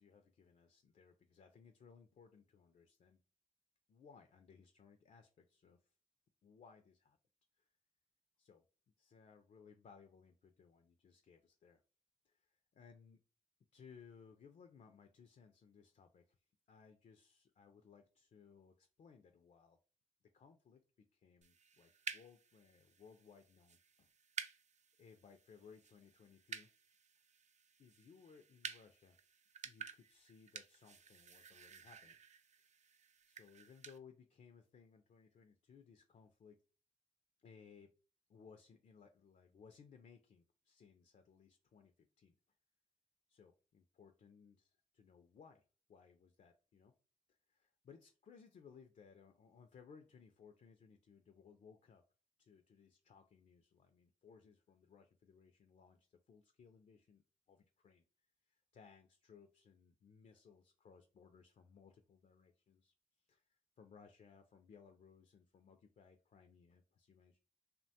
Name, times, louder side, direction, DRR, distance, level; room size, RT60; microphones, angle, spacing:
voice 1, 0.0-3.2 3.9-5.9 6.4-7.2 7.6-7.7 8.4-8.6 9.0-11.8 12.2-13.2 13.7-16.4 16.7-19.8 20.2-20.8 21.1-24.1 25.0-26.7 27.8-29.2 29.6-32.2 33.3-36.6 37.4-37.9 38.3-42.4 43.3-45.6 45.9-46.9 47.3-52.0 52.4-58.0 58.5-67.4, left 6 dB, 55° left, 6 dB, 0.4 m, -63 dB
sound 1, 21.4-34.0, right 6 dB, 50° right, 0.4 m, -52 dB
2.7 x 2.2 x 2.7 m, 0.36 s
cardioid pair, 50°, 15 cm